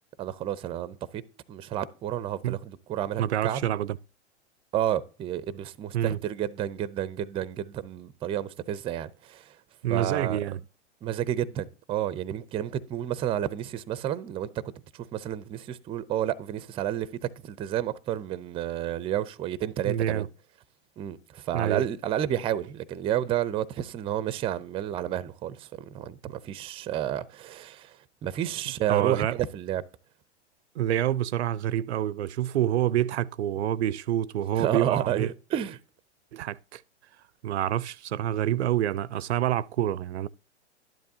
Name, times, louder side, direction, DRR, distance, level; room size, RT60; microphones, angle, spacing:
voice 1, 0.2-1.2 1.5-3.7 4.7-9.6 9.9-10.4 11.0-14.6 14.9-20.2 21.0-29.8 34.6-35.8, right 11 dB, 15° right, 0.5 m, -31 dB
voice 2, 3.2-4.0 5.9-6.2 9.8-10.6 19.8-20.3 21.5-21.9 28.9-29.3 30.8-35.3 36.3-36.8 37.4-40.3, right 11 dB, 70° right, 0.5 m, -27 dB
12.0 x 10.5 x 2.7 m
hypercardioid pair, 110°, 35 cm